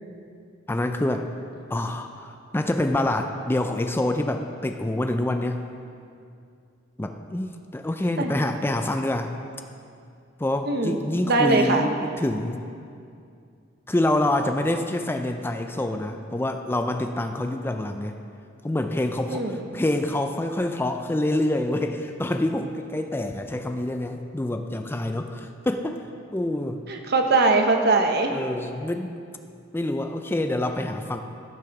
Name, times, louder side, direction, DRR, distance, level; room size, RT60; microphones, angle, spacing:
voice 1, 0.7-1.3 1.7-5.6 7.0-9.3 10.4-12.6 13.9-18.2 18.6-26.0 26.3-26.8 28.3-29.1 29.7-31.2, left 1 dB, 10° left, 6 dB, 0.4 m, -26 dB
voice 2, 10.6-11.0 11.3-11.9 19.3-19.7 26.9-28.3, right 3 dB, 60° right, 4 dB, 1.0 m, -21 dB
13.5 x 6.3 x 5.9 m, 2.5 s
head